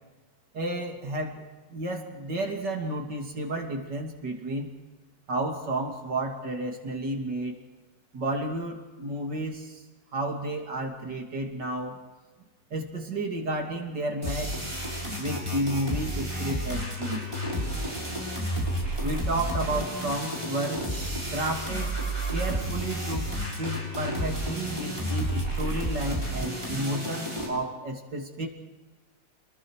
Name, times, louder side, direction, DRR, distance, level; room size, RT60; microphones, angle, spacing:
voice 1, 0.5-4.7 5.3-7.5 8.1-9.8 10.1-12.0 12.7-14.7 15.2-17.3 19.0-20.9 21.3-22.0 22.3-23.3 23.6-28.5, right 1 dB, 65° right, 2 dB, 3.5 m, -32 dB
sound 1, 14.2-27.5, equal, 15° right, 7.5 m, -31 dB
30.0 x 21.5 x 4.8 m, 1.3 s
omnidirectional pair, 2.0 m